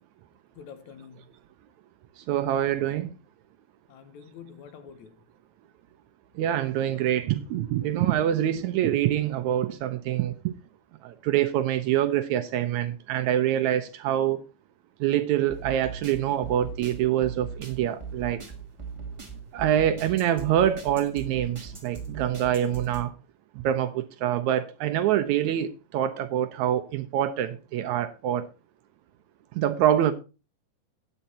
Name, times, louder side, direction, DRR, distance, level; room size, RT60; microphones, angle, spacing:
voice 1, 0.6-1.3 3.9-5.2, left 7 dB, 70° left, 2.3 m, -47 dB
voice 2, 2.2-3.1 6.4-10.6 11.0-14.4 15.0-18.4 19.5-23.1 23.6-28.5 29.6-30.1, right 11 dB, 75° right, 1.8 m, -25 dB
sound 1, 15.5-23.0, right 5 dB, 35° right, 0.4 m, -39 dB
9.2 x 9.1 x 4.2 m
omnidirectional pair, 3.7 m